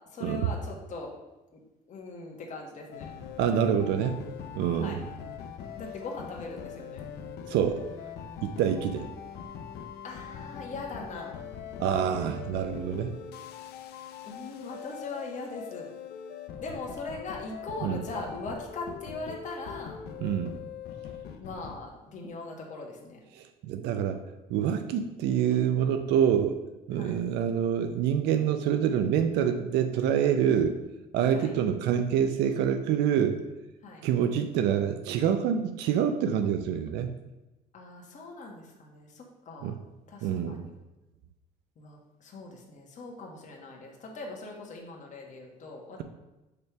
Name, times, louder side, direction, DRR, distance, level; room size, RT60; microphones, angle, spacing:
voice 1, 0.1-1.1 1.5-1.6 1.9-3.1 4.7-5.0 5.7-7.0 10.0-11.4 14.2-15.9 16.6-20.0 21.4-23.2 26.9-27.2 30.4-30.9 31.3-31.5 33.8-34.0 37.7-39.7 40.1-40.7 41.8-46.0, left 3 dB, 45° left, -1 dB, 1.5 m, -40 dB
sound 1, 2.9-21.8, left 8 dB, 70° left, 0.6 m, -42 dB
voice 2, 3.4-4.2 4.5-5.0 7.5-7.8 8.4-9.1 11.8-13.2 17.8-18.0 20.2-20.5 23.3-24.2 24.5-26.6 26.9-30.8 31.1-33.4 34.0-37.2 39.6-39.8 40.2-40.7, right 8 dB, 85° right, 8 dB, 0.5 m, -26 dB
6.7 x 3.4 x 5.8 m, 1.0 s
cardioid pair, 110°, 17 cm